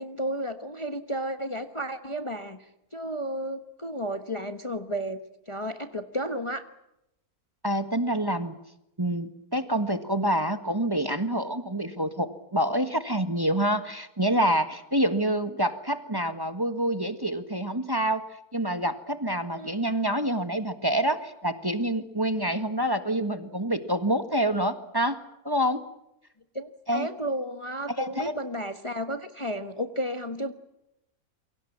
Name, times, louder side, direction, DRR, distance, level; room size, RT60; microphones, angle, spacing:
voice 1, 0.0-5.2 5.5-6.7 19.6-19.7 26.5-30.5, equal, 20° left, 9 dB, 1.3 m, -32 dB
voice 2, 7.6-8.5 9.0-18.2 18.5-25.2 25.4-25.8 26.9-27.1 28.0-28.3, right 1 dB, 15° right, 9 dB, 1.6 m, -27 dB
28.5 x 24.0 x 7.3 m, 0.86 s
omnidirectional pair, 1.6 m